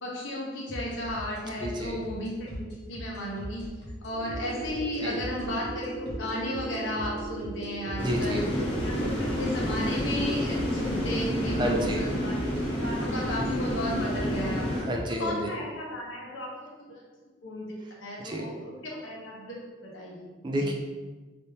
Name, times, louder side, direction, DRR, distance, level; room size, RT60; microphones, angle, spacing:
voice 1, 0.0-3.7 4.0-8.4 8.8-14.8 15.2-17.0 17.4-20.7, left 1 dB, 80° left, -4 dB, 0.9 m, -34 dB
sound 1, 0.7-15.0, equal, 60° left, 0.9 m, -40 dB
voice 2, 1.6-2.0 5.0-5.2 8.0-8.5 11.5-12.1 14.7-15.5 18.2-18.5 20.4-20.7, equal, 25° right, 1 dB, 0.3 m, -30 dB
sound 2, 4.0-9.0, right 4 dB, 85° right, 0.6 m, -39 dB
sound 3, 8.0-14.8, equal, 25° left, 0.6 m, -29 dB
3.4 x 2.6 x 2.7 m, 1.3 s
head